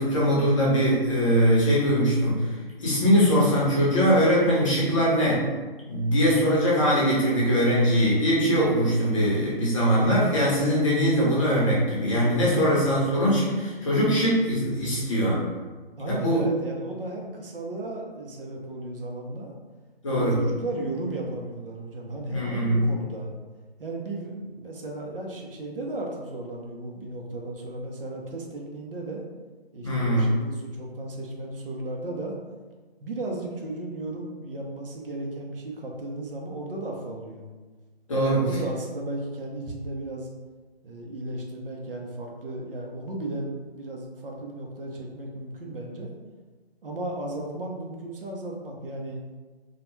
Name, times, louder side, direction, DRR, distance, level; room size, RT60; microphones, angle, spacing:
voice 1, 0.0-2.5 2.8-5.5 5.9-15.4 16.1-16.4 20.0-20.4 22.3-22.8 29.8-30.3 38.1-38.4, equal, 30° left, -6 dB, 0.7 m, -22 dB
voice 2, 16.0-19.5 20.1-23.3 23.8-29.2 29.7-32.3 33.0-37.4 38.1-40.3 40.8-46.1 46.8-49.2, right 2 dB, 65° right, 0 dB, 0.6 m, -35 dB
2.3 x 2.2 x 3.0 m, 1.3 s
figure-of-eight pair, 155°, 31 cm